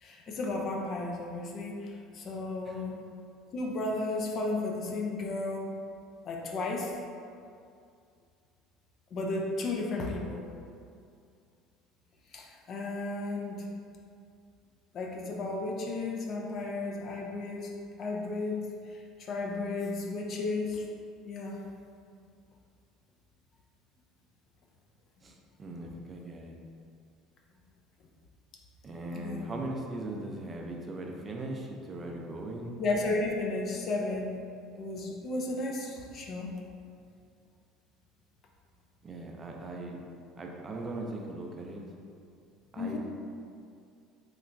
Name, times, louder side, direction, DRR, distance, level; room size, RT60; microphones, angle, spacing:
voice 1, 0.0-3.0 3.5-5.7 6.2-6.9 9.1-10.4 12.3-13.7 14.9-17.7 18.0-18.6 18.9-20.8 21.2-21.6 29.1-29.5 32.8-34.3 34.8-36.5 42.8-43.0, left 2 dB, 45° left, 0 dB, 0.5 m, -33 dB
voice 2, 25.2-26.6 28.8-32.7 39.0-40.0 40.4-41.8 42.7-43.0, right 2 dB, 30° right, 0 dB, 0.4 m, -39 dB
3.2 x 2.9 x 2.5 m, 2.3 s
supercardioid pair, 105°, 0 cm